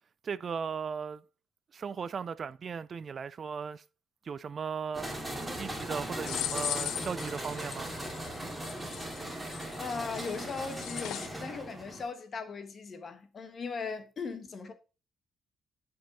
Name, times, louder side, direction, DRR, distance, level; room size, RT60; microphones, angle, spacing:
voice 1, 0.2-1.2 1.7-3.8 4.2-5.1 5.5-7.9, right 6 dB, 45° right, 0.3 m, -37 dB
sound 1, 4.9-12.0, right 1 dB, 5° right, 2.4 m, -39 dB
sound 2, 6.3-11.3, left 12 dB, 80° left, 0.4 m, -38 dB
voice 2, 9.8-14.7, left 5 dB, 45° left, 1.4 m, -38 dB
7.6 x 5.3 x 4.1 m
cardioid pair, 100°, 0 cm